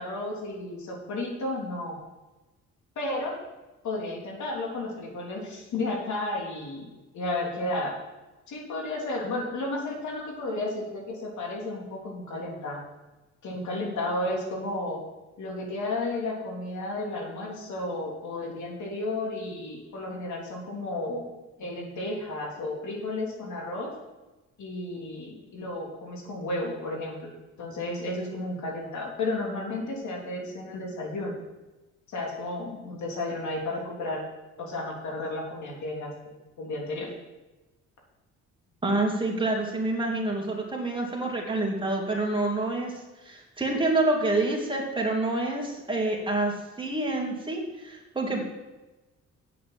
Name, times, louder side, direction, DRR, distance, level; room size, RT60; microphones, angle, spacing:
voice 1, 0.0-2.0 2.9-3.3 3.8-6.9 7.1-8.0 8.5-12.8 13.4-15.0 15.4-21.3 21.6-23.9 24.6-27.3 27.6-31.4 32.1-34.2 34.6-37.1, left 2 dB, 70° left, -1 dB, 3.3 m, -33 dB
voice 2, 38.8-48.4, right 2 dB, 15° right, -1 dB, 2.7 m, -27 dB
8.6 x 7.4 x 7.6 m, 1.1 s
cardioid pair, 90°, 30 cm